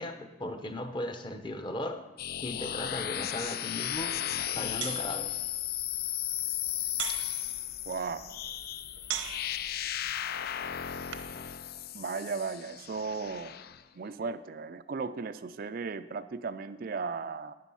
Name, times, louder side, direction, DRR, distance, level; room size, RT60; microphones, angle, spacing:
voice 1, 0.0-2.0 2.4-4.2 4.5-5.4, left 1 dB, 25° left, 7 dB, 0.8 m, -37 dB
sound 1, 2.2-13.8, left 11 dB, 50° left, 0.4 m, -35 dB
sound 2, 3.8-11.4, right 9 dB, 85° right, 0.9 m, -43 dB
voice 2, 7.9-8.4 11.9-13.6 13.9-17.5, right 4 dB, 50° right, 11 dB, 0.4 m, -36 dB
12.0 x 9.0 x 5.5 m, 1.1 s
head